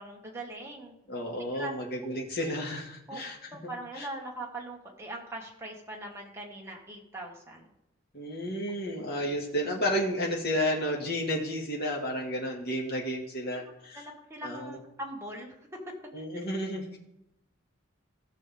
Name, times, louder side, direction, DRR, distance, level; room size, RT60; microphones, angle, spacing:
voice 1, 0.0-1.0 1.5-1.7 2.0-2.2 3.1-3.2 3.5-7.7 13.5-13.6 13.9-15.7 16.2-16.3, right 1 dB, 15° right, -2 dB, 1.7 m, -41 dB
voice 2, 1.1-3.4 3.6-3.7 4.0-4.1 8.1-14.0 14.4-14.8 16.1-17.0, equal, 55° left, -1 dB, 2.0 m, -32 dB
16.5 x 6.2 x 3.5 m, 0.83 s
head